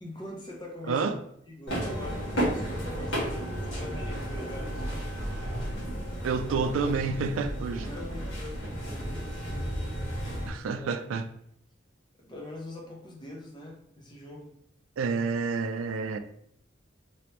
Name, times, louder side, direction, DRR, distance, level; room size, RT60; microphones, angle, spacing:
voice 1, 0.0-1.2 1.5-5.0 6.5-6.9 7.7-9.9 10.6-11.0 12.2-14.5, left 1 dB, 25° left, -1 dB, 0.7 m, -43 dB
sound 1, 1.7-10.5, equal, 70° left, 1.4 m, -33 dB
voice 2, 6.2-7.8 10.5-11.2 15.0-16.2, right 4 dB, 90° right, 8 dB, 0.3 m, -29 dB
3.0 x 2.9 x 3.1 m, 0.70 s
head